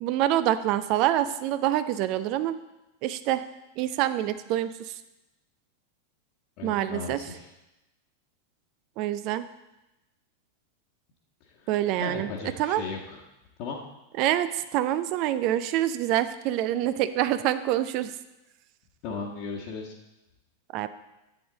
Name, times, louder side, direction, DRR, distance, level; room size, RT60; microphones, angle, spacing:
voice 1, 0.0-2.6 3.0-3.4 3.8-4.9 6.6-7.2 9.0-9.4 11.7-12.3 12.6-12.8 14.2-18.1 20.7-20.9, right 13 dB, 40° right, 12 dB, 0.6 m, -26 dB
voice 2, 6.6-7.5 11.6-11.7 12.0-13.2 13.6-13.8 19.0-19.9, left 4 dB, 45° left, -5 dB, 1.4 m, -36 dB
11.0 x 8.6 x 4.0 m, 0.97 s
figure-of-eight pair, 90°, 0 cm